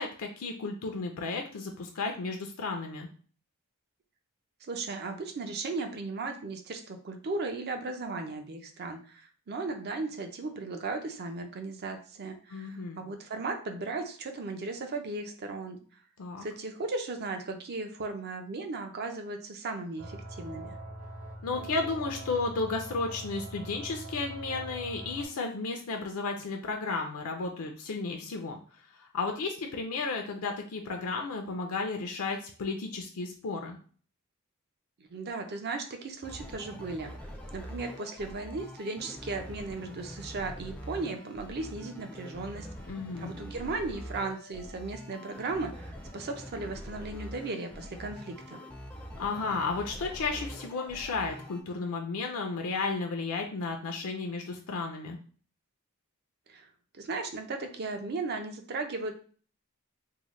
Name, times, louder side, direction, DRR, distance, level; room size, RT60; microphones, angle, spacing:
voice 1, 0.0-3.1 12.5-13.0 16.2-16.5 21.4-28.6 29.0-33.8 42.9-43.3 49.2-55.2, left 3 dB, 75° left, 3 dB, 0.5 m, -33 dB
voice 2, 4.7-15.8 16.4-20.7 35.1-37.1 37.5-42.7 43.2-48.6 56.5-56.7 57.0-59.1, right 3 dB, 50° right, 5 dB, 0.5 m, -36 dB
sound 1, 20.0-25.3, right 1 dB, 75° right, 1.1 m, -42 dB
sound 2, 36.2-51.6, equal, 5° left, 0.4 m, -44 dB
3.7 x 2.1 x 3.1 m, 0.42 s
head